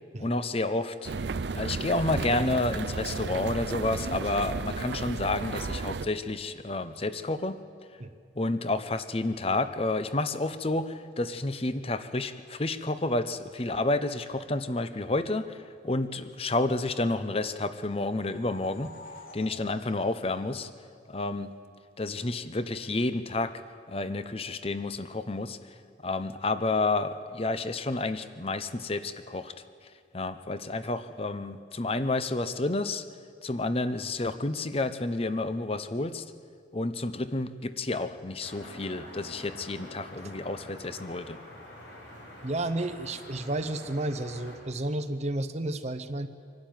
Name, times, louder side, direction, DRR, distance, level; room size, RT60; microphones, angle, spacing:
voice 1, 0.2-1.1 1.5-7.6 8.3-18.9 19.3-20.7 21.1-21.5 22.0-23.5 23.9-25.6 26.0-29.5 30.1-33.0 33.4-36.2 36.7-41.4, left 2 dB, 30° left, 12 dB, 0.8 m, -30 dB
sound 1, 1.0-6.1, right 4 dB, 70° right, 0.5 m, -33 dB
sound 2, 17.8-21.3, left 2 dB, 50° left, 1.4 m, -50 dB
sound 3, 38.4-44.6, left 1 dB, 80° left, 6.1 m, -47 dB
voice 2, 42.4-46.3, right 1 dB, 35° right, 10 dB, 0.8 m, -32 dB
24.5 x 12.0 x 9.3 m, 2.2 s
head